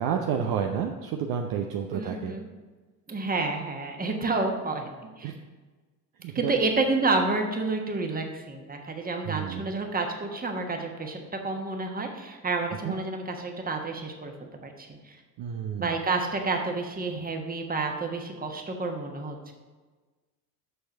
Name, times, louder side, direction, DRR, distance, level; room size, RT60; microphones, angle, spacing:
voice 1, 0.0-2.3 5.2-5.3 6.2-6.5 9.3-9.7 12.8-12.9 15.4-16.0, right 8 dB, 45° right, 4 dB, 0.7 m, -30 dB
voice 2, 1.9-2.5 3.1-4.9 5.2-5.3 6.3-11.2 11.4-14.3 14.6-15.2 15.8-19.5, right 3 dB, 20° right, 3 dB, 1.4 m, -29 dB
6.9 x 6.4 x 5.9 m, 1.3 s
figure-of-eight pair, 60°, 48 cm